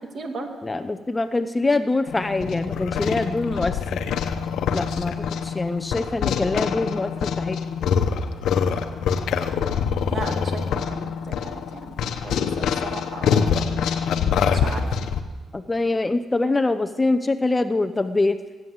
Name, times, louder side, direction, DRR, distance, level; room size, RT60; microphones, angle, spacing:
voice 1, 0.0-0.5 10.1-13.8 14.5-14.9, right 3 dB, 45° right, 4 dB, 2.4 m, -36 dB
voice 2, 0.6-4.0 4.7-7.6 15.5-18.4, left 2 dB, 20° left, 11 dB, 0.6 m, -24 dB
sound 1, 2.1-15.2, left 7 dB, 75° left, 1.0 m, -25 dB
19.0 x 8.7 x 7.9 m, 1.3 s
cardioid pair, 90°, 0 cm